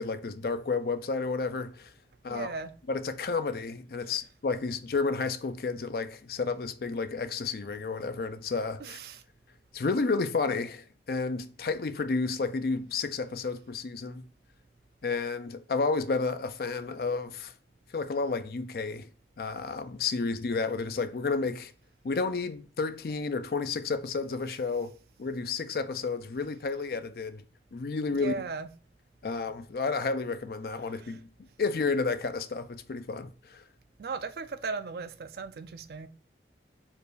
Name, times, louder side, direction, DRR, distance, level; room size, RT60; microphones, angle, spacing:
voice 1, 0.0-1.9 2.2-2.5 2.9-9.0 9.7-14.3 15.0-17.5 17.9-19.1 19.4-21.7 22.0-24.9 25.2-27.4 27.7-28.3 29.2-31.3 31.6-33.6, left 4 dB, 55° left, 0.4 m, -31 dB
voice 2, 2.3-2.7 4.0-4.2 8.8-9.2 28.1-28.7 30.8-31.2 34.0-36.1, right 4 dB, 60° right, 0.4 m, -37 dB
4.5 x 2.4 x 4.8 m
head